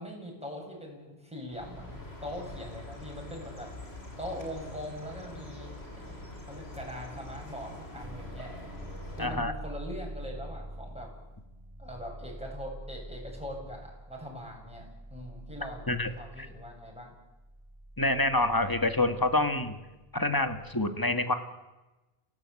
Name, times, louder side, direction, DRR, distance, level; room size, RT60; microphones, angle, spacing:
voice 1, 0.0-3.7 4.2-8.5 9.1-11.1 11.8-17.1, equal, 5° right, -1 dB, 7.9 m, -42 dB
Chirp tweet, 1.5-9.3, left 1 dB, 90° left, 4.2 m, -44 dB
sound 1, 8.0-20.7, right 1 dB, 30° right, 1.9 m, -46 dB
voice 2, 9.2-9.5 15.9-16.1 16.4-16.5 18.0-19.8 20.1-21.3, left 2 dB, 20° left, 8 dB, 1.9 m, -27 dB
28.0 x 18.0 x 8.5 m, 1.1 s
omnidirectional pair, 1.0 m